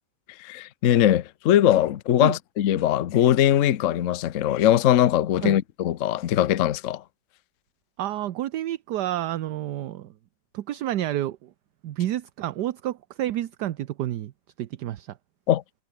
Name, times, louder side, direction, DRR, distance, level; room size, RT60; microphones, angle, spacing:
voice 1, 0.4-7.0 15.5-15.6, left 11 dB, 55° left, 0.9 m, -21 dB
voice 2, 8.0-10.1 10.5-11.5 11.8-14.3 14.6-15.2, right 13 dB, 70° right, 1.3 m, -29 dB
omnidirectional pair, 2.0 m